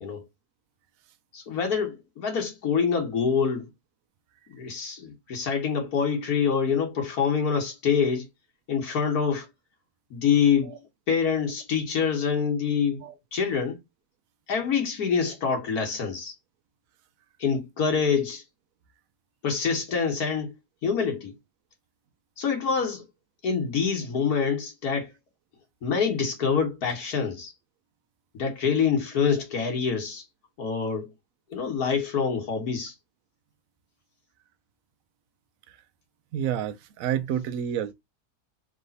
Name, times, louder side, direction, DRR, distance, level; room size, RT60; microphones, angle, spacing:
voice 1, 1.3-3.7 4.5-8.3 8.7-9.5 10.1-10.8 11.1-13.0 13.3-13.8 14.5-16.3 17.4-18.4 19.4-20.5 20.8-21.3 22.4-23.0 23.4-25.1 25.8-27.5 28.3-30.2 30.6-31.1 31.5-32.9, left 6 dB, 70° left, 1.5 m, -26 dB
voice 2, 36.3-37.9, right 9 dB, 70° right, 1.0 m, -29 dB
3.3 x 3.2 x 3.9 m
omnidirectional pair, 1.6 m